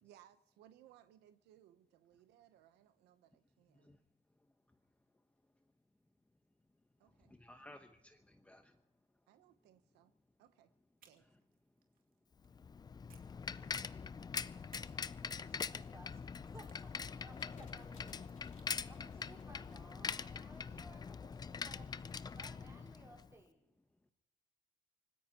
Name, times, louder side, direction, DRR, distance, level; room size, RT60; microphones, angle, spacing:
voice 1, 0.0-4.0 7.0-7.3 7.6-7.8 9.3-10.1 10.4-10.7 11.0-11.2, right 12 dB, 85° right, 0.9 m, -65 dB
voice 2, 7.2-8.8, left 1 dB, 10° left, 1.0 m, -58 dB
sound 1, 11.0-12.5 13.1-14.1 14.7-18.8, right 7 dB, 60° right, 2.4 m, -70 dB
Bicycle, 12.4-23.3, left 5 dB, 25° left, 0.5 m, -43 dB
voice 3, 15.2-16.3 16.5-18.3 18.8-23.6, right 2 dB, 15° right, 4.5 m, -60 dB
sound 2, 17.3-21.2, left 5 dB, 50° left, 3.1 m, -63 dB
25.5 x 19.0 x 2.9 m
cardioid pair, 110°, 17 cm